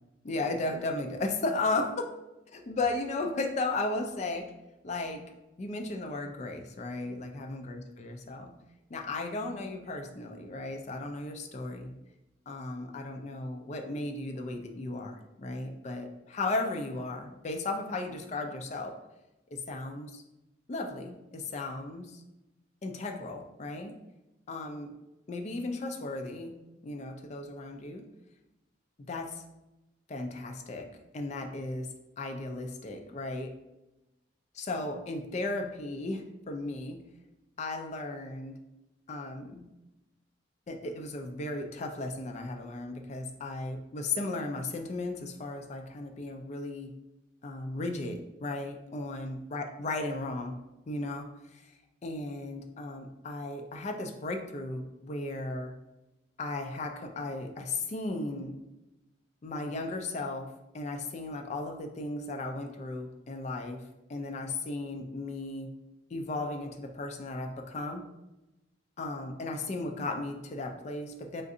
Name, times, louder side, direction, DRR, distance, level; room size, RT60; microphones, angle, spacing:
voice 1, 0.2-2.0 2.7-4.5 4.8-5.2 5.6-8.5 8.9-11.9 12.5-18.9 19.5-20.2 20.7-22.2 22.8-24.0 24.5-24.9 25.3-26.5 26.8-28.1 29.1-29.4 30.1-30.9 31.1-31.9 32.2-33.5 34.5-37.0 37.6-38.5 39.1-39.7 40.7-46.9 47.4-50.6 50.9-51.7 52.0-55.7 56.4-58.5 59.4-60.5 60.7-63.8 64.1-65.7 66.1-68.0 69.0-71.4, left 2 dB, 35° left, 4 dB, 0.3 m, -35 dB
3.7 x 2.4 x 2.6 m, 0.97 s
head